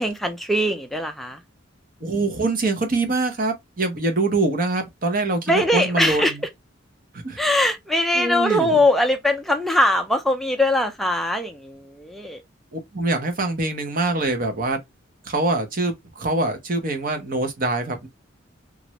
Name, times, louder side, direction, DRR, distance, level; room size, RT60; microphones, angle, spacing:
voice 1, 0.0-1.4 5.5-6.3 7.4-12.4, left 1 dB, ahead, 0.5 m, -21 dB
voice 2, 2.0-6.4 7.1-7.4 8.1-8.8 12.7-14.8 15.3-18.1, right 2 dB, 45° right, 0.8 m, -24 dB
3.1 x 2.5 x 2.9 m
head